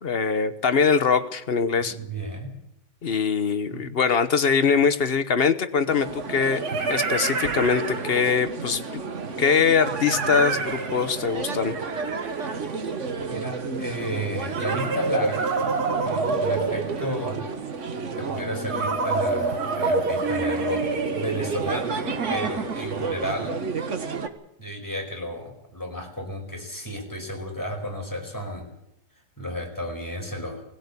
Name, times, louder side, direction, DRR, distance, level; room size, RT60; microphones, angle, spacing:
voice 1, 0.0-2.0 3.0-9.0 9.4-11.7, left 6 dB, 40° left, 11 dB, 1.2 m, -22 dB
voice 2, 1.8-2.6 3.7-3.9 13.3-15.5 15.9-17.5 18.2-22.0 22.3-23.6 24.6-28.7 29.4-30.6, equal, 10° left, 1 dB, 4.9 m, -32 dB
sound 1, 4.7-4.8 6.2-8.6 9.8-13.3 14.5-17.5 18.7-23.0, right 3 dB, 70° right, 2.4 m, -28 dB
sound 2, 5.9-24.3, right 4 dB, 50° right, 1.7 m, -32 dB
20.0 x 16.5 x 8.3 m, 0.82 s
omnidirectional pair, 1.7 m